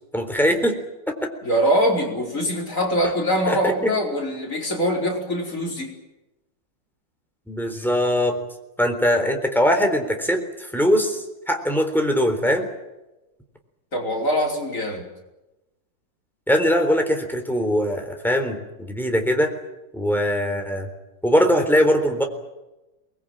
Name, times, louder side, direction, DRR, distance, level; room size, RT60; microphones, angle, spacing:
voice 1, 0.1-0.8 1.1-1.3 3.5-3.9 7.5-8.4 8.8-12.7 16.5-19.5 19.9-20.9 21.2-22.2, equal, ahead, 4 dB, 3.7 m, -21 dB
voice 2, 1.4-5.9 13.9-15.1, equal, 40° left, 0 dB, 5.2 m, -23 dB
24.0 x 20.5 x 9.0 m, 1.0 s
omnidirectional pair, 2.1 m